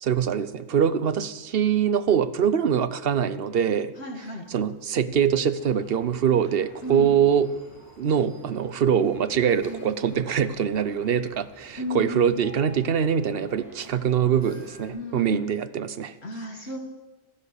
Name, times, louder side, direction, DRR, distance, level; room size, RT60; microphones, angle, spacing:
voice 1, 0.0-3.9 4.5-7.5 8.0-16.1, right 8 dB, 60° right, 13 dB, 0.9 m, -23 dB
voice 2, 4.0-4.5 6.8-7.1 9.7-9.8 11.8-12.2 14.9-15.4 16.2-16.8, left 1 dB, 60° left, 3 dB, 1.9 m, -33 dB
sound 1, 5.6-14.9, equal, 15° right, 4.1 m, -49 dB
15.0 x 12.5 x 6.6 m, 1.2 s
omnidirectional pair, 1.2 m